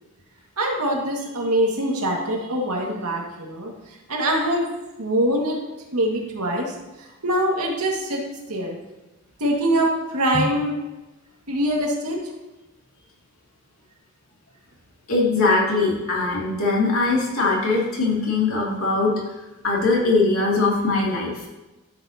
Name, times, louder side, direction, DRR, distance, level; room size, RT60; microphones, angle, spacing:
voice 1, 0.6-3.7 4.1-4.7 5.0-5.6 5.9-6.7 7.2-8.2 8.5-8.8 9.4-10.8 11.5-12.2, right 1 dB, 85° right, -1 dB, 2.0 m, -23 dB
voice 2, 15.1-19.1 19.6-21.3, left 3 dB, 65° left, -4 dB, 2.7 m, -21 dB
12.0 x 8.1 x 2.9 m, 1.1 s
head